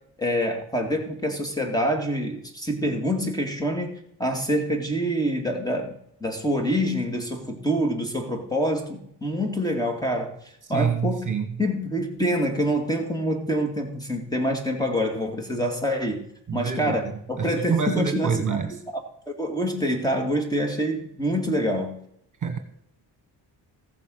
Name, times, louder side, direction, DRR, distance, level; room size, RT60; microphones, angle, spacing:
voice 1, 0.2-10.3 10.7-11.3 11.6-16.2 16.5-18.6 18.9-21.9, equal, 10° left, 3 dB, 2.6 m, -26 dB
voice 2, 10.7-11.5 16.5-17.0 17.4-18.7 22.4-22.6, right 6 dB, 45° right, 7 dB, 1.5 m, -26 dB
15.0 x 6.9 x 6.5 m, 0.71 s
cardioid pair, 105°, 43 cm